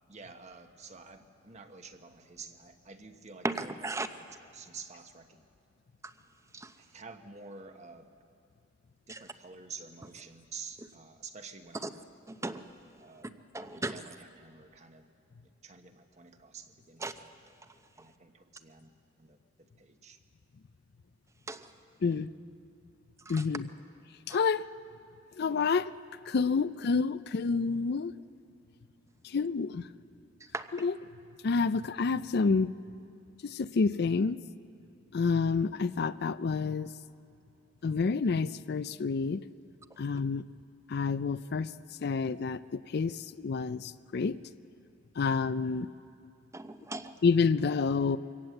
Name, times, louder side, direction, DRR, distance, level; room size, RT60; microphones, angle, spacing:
voice 1, 0.1-3.7 4.2-4.3 4.5-5.4 6.8-8.1 9.1-12.0 13.0-13.3 13.6-15.0 15.6-17.1 18.0-18.9 19.2-19.4 19.8-20.2, right 5 dB, 40° right, 6 dB, 1.1 m, -49 dB
voice 2, 3.4-4.1 6.0-6.1 6.5-6.7 9.1-9.2 11.8-11.9 12.3-12.6 13.5-14.0 17.0-17.1 21.5-21.7 23.3-23.4 24.3-24.4 30.5-30.7 46.5-47.1, right 2 dB, 15° right, 9 dB, 0.7 m, -36 dB
voice 3, 23.3-23.7 24.3-24.7 25.4-25.9 26.3-28.1 29.2-29.8 30.8-30.9 31.4-32.7 33.4-34.4 35.1-36.9 37.8-39.4 40.0-40.4 40.9-41.7 42.0-44.4 45.2-45.9 47.2-48.2, left 4 dB, 60° left, 14 dB, 0.4 m, -28 dB
23.5 x 17.5 x 7.8 m, 2.5 s
head